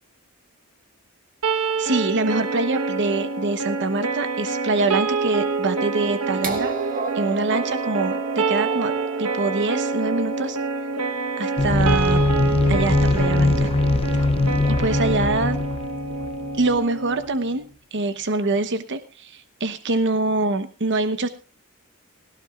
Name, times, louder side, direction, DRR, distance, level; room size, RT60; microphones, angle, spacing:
sound 1, 1.4-17.5, right 4 dB, 85° right, 1.2 m, -27 dB
voice 1, 1.8-6.7 7.1-8.9 9.2-10.6 11.4-12.2 12.7-13.7 14.7-15.6 16.5-21.3, right 3 dB, 55° right, 10 dB, 1.0 m, -24 dB
sound 2, 6.4-12.3 13.4-13.5, right 5 dB, 40° right, 2.1 m, -33 dB
sound 3, 11.6-16.8, left 2 dB, 25° left, 0.6 m, -21 dB
18.0 x 17.0 x 2.4 m, 0.34 s
head